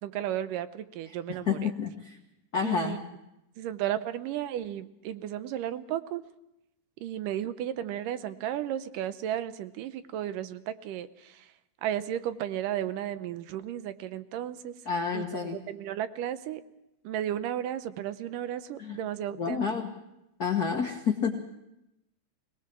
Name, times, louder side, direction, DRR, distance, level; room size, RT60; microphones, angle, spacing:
voice 1, 0.0-1.7 2.6-3.0 3.6-6.2 7.0-11.5 11.8-14.7 15.1-16.6 17.0-19.6, right 11 dB, 80° right, 12 dB, 2.4 m, -34 dB
voice 2, 1.1-2.2 2.5-3.0 14.8-15.6 18.8-19.0 19.4-19.8 20.4-21.4, left 6 dB, 70° left, 3 dB, 0.9 m, -29 dB
22.0 x 19.5 x 6.1 m, 0.88 s
omnidirectional pair, 3.8 m